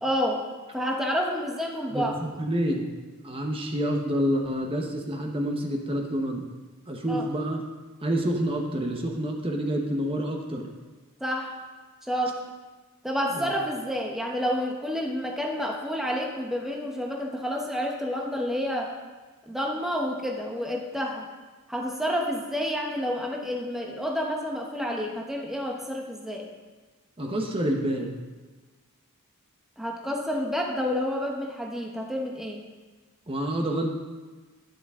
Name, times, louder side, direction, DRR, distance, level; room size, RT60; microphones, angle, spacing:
voice 1, 0.0-0.4 0.7-2.2 7.1-7.3 11.2-11.6 12.0-12.4 13.0-18.9 19.5-21.3 21.7-26.5 29.8-32.6, equal, ahead, -1 dB, 1.0 m, -29 dB
voice 2, 1.9-2.9 3.2-6.4 6.9-7.6 8.0-10.7 13.3-13.5 27.2-28.1 33.3-33.9, equal, 25° right, 2 dB, 1.1 m, -28 dB
12.0 x 9.9 x 3.7 m, 1.3 s
head